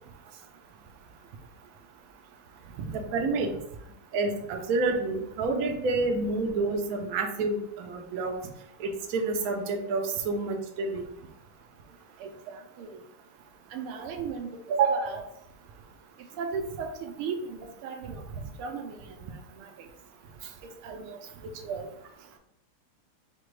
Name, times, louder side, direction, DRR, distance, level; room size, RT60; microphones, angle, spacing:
voice 1, 2.9-3.5 4.1-8.3 8.8-11.0 14.7-15.1, right 3 dB, 65° right, 1 dB, 0.9 m, -28 dB
voice 2, 12.2-13.0 13.7-14.6 14.9-15.2 16.4-19.3 19.6-19.7 20.6-21.9, right 5 dB, 80° right, 5 dB, 1.5 m, -37 dB
5.0 x 2.2 x 4.6 m, 0.77 s
omnidirectional pair, 2.4 m